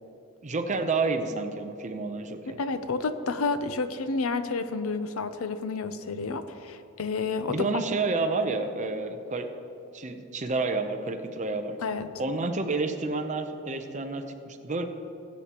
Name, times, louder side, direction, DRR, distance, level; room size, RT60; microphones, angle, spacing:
voice 1, 0.4-2.6 7.5-9.5 9.9-11.8 12.2-14.8, right 3 dB, 35° right, 7 dB, 0.7 m, -29 dB
voice 2, 2.6-7.7 11.8-12.1, left 4 dB, 70° left, 10 dB, 0.6 m, -30 dB
18.0 x 8.3 x 3.0 m, 3.0 s
head